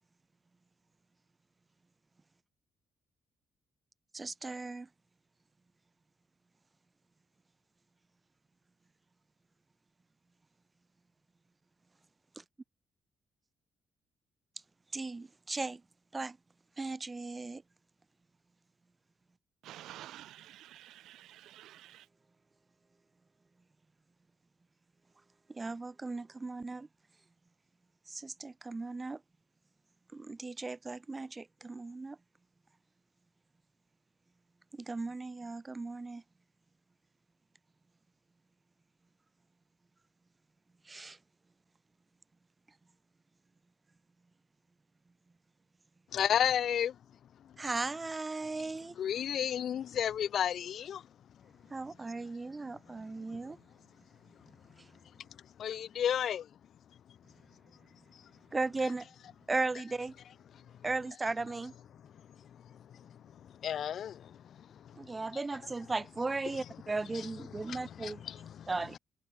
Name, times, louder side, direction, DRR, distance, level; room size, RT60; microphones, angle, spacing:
voice 1, 4.1-4.9 12.4-12.5 14.9-15.8 16.1-16.4 16.8-17.6 25.5-26.9 28.1-29.2 30.1-32.2 34.7-36.2 40.8-41.2 47.6-49.0 51.7-53.6 54.2-54.3 54.8-54.9 58.5-60.2 60.8-61.7 64.9-68.3 68.7-69.0, right 3 dB, 15° right, 4.3 m, -37 dB
voice 2, 19.6-21.9, right 13 dB, 85° right, 1.0 m, -50 dB
voice 3, 46.1-47.0 49.0-51.0 55.6-56.5 62.6-65.0 67.7-68.7, left 9 dB, 50° left, 3.2 m, -33 dB
cardioid pair, 175°, 0 cm